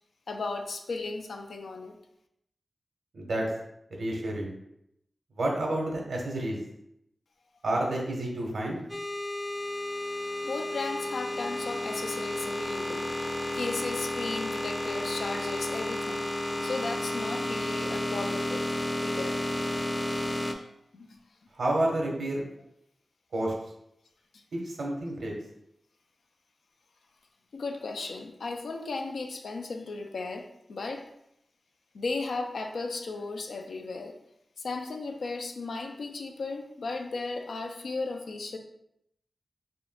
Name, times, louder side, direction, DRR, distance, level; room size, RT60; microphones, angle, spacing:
voice 1, 0.3-2.0 10.4-16.3 16.6-18.7 19.0-19.5 20.5-20.7 20.9-21.2 24.3-24.4 27.5-31.1 31.9-34.2 34.6-38.6, left 3 dB, 90° left, 4 dB, 0.4 m, -35 dB
voice 2, 3.1-3.5 4.0-4.5 5.4-6.6 7.6-8.8 21.6-22.4 23.3-23.5 24.5-25.3, right 1 dB, 85° right, -1 dB, 1.0 m, -29 dB
sound 1, 8.9-20.5, left 1 dB, 15° left, 0.5 m, -32 dB
4.3 x 3.4 x 2.2 m, 0.78 s
wide cardioid pair, 65°, 0 cm